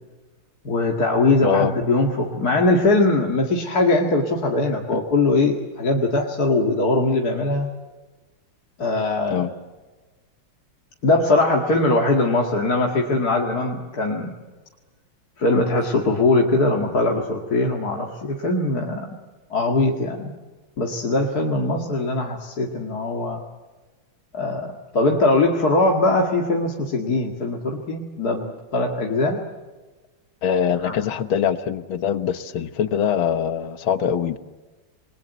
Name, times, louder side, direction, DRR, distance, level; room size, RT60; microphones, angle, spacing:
voice 1, 0.6-7.7 8.8-9.4 11.0-14.3 15.4-19.1 19.5-20.3 20.8-23.4 24.3-29.4 30.8-30.9, left 2 dB, 45° left, 0 dB, 2.4 m, -21 dB
voice 2, 1.4-1.7 4.9-5.0 9.3-9.5 30.4-34.4, left 8 dB, 70° left, 11 dB, 1.9 m, -23 dB
28.5 x 22.0 x 8.1 m, 1.2 s
omnidirectional pair, 2.4 m